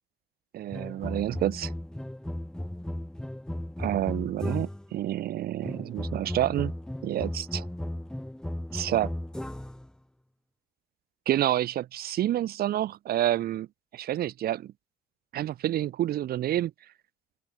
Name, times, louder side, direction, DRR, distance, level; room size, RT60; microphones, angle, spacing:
voice 1, 0.5-1.7 3.8-6.7 7.0-7.7 8.7-9.1 11.3-13.7 13.9-14.7 15.3-16.7, right 12 dB, 65° right, 2.5 m, -28 dB
sound 1, 0.7-5.0 5.6-9.9, left 1 dB, 5° left, 1.4 m, -35 dB
open air
cardioid pair, 110°, 17 cm